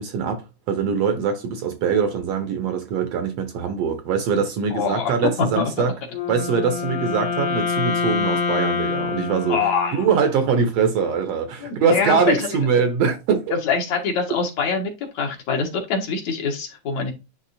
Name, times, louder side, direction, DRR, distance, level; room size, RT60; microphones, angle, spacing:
voice 1, 0.0-5.9 6.3-9.6 9.9-13.5, right 6 dB, 65° right, 1.8 m, -22 dB
voice 2, 4.7-5.6 9.5-10.1 11.6-12.4 13.6-14.9 15.1-17.1, left 5 dB, 65° left, 2.8 m, -24 dB
Wind instrument woodwind instrument, 6.1-10.3, left 5 dB, 50° left, 1.9 m, -26 dB
10.5 x 3.5 x 2.7 m
omnidirectional pair, 3.4 m